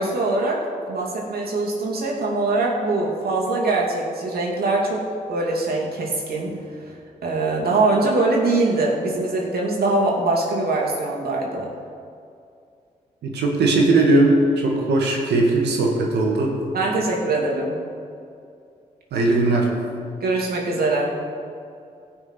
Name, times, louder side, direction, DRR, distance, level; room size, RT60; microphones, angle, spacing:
voice 1, 0.0-5.0 5.3-6.9 7.2-11.7 16.7-17.8 20.2-21.1, right 2 dB, 65° right, -2 dB, 2.6 m, -23 dB
voice 2, 13.2-16.5 19.1-19.7, right 2 dB, 80° right, 0 dB, 1.8 m, -19 dB
17.5 x 5.9 x 4.5 m, 2.4 s
supercardioid pair, 45°, 17 cm